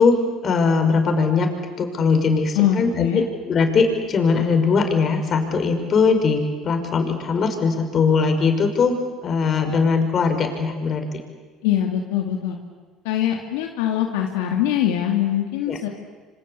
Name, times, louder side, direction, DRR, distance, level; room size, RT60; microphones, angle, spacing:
voice 1, 0.0-1.5 1.8-11.0 15.7-15.8, left 4 dB, 45° left, 6 dB, 5.6 m, -20 dB
voice 2, 2.6-3.2 11.6-12.6 13.0-15.9, left 11 dB, 85° left, 2 dB, 2.4 m, -22 dB
27.5 x 25.5 x 8.4 m, 1.4 s
supercardioid pair, 85°, 0 cm